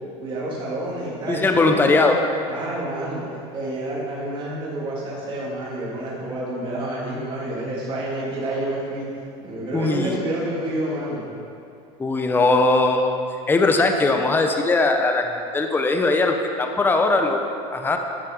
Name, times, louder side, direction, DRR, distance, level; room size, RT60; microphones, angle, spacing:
voice 1, 0.2-2.1 2.5-3.3 3.5-9.1 9.4-11.2, right 1 dB, 35° right, -6 dB, 2.8 m, -29 dB
voice 2, 1.3-2.2 9.7-10.2 12.0-13.1 13.5-15.3 15.5-17.4 17.7-18.0, left 3 dB, 15° left, 4 dB, 0.7 m, -19 dB
11.5 x 6.6 x 5.3 m, 2.6 s
supercardioid pair, 115°, 15 cm